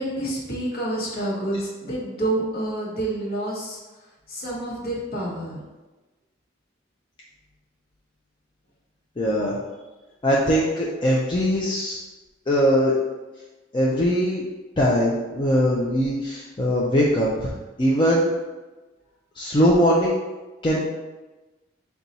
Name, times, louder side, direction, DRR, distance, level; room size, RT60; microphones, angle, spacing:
voice 1, 0.0-5.6, right 1 dB, 45° left, -4 dB, 1.0 m, -28 dB
voice 2, 9.2-9.6 10.2-12.0 12.5-12.9 13.7-14.4 14.8-18.3 19.3-20.2 20.6-20.8, equal, 25° left, -5 dB, 0.4 m, -21 dB
3.9 x 2.3 x 4.0 m, 1.2 s
head